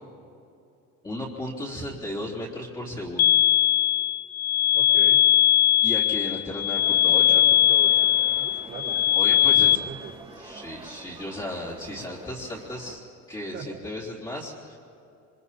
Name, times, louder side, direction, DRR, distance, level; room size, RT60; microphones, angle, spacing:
voice 1, 1.0-3.4 5.8-7.5 9.2-9.8 10.3-13.0 13.3-14.8, left 1 dB, 15° left, -7 dB, 3.3 m, -35 dB
sound 1, 3.2-9.8, left 12 dB, 60° left, 0.6 m, -20 dB
voice 2, 4.7-5.2 7.2-8.1 8.4-10.1 13.5-13.7, right 6 dB, 45° right, -9 dB, 4.1 m, -40 dB
sound 2, 6.7-13.0, right 3 dB, 20° right, 2.8 m, -45 dB
27.5 x 24.5 x 4.3 m, 2.6 s
cardioid pair, 160°, 30 cm